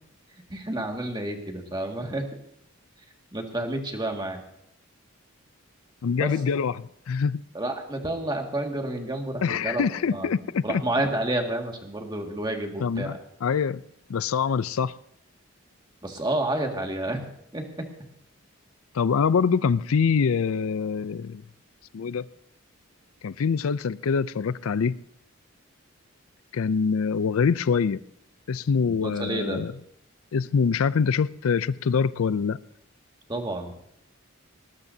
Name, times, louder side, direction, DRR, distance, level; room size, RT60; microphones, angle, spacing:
voice 1, 0.5-2.2 3.3-4.4 6.2-6.3 7.5-10.3 10.6-13.2 16.0-17.3 17.5-17.6 28.9-29.6 33.3-33.7, right 1 dB, 20° right, 2.0 m, -30 dB
voice 2, 6.0-6.7 7.1-7.4 9.4-10.8 12.8-13.8 14.1-14.9 18.9-21.4 21.9-22.2 23.2-25.0 26.5-28.0 28.5-29.7 30.3-32.6, left 6 dB, 80° left, 0.4 m, -24 dB
19.5 x 18.5 x 2.8 m
head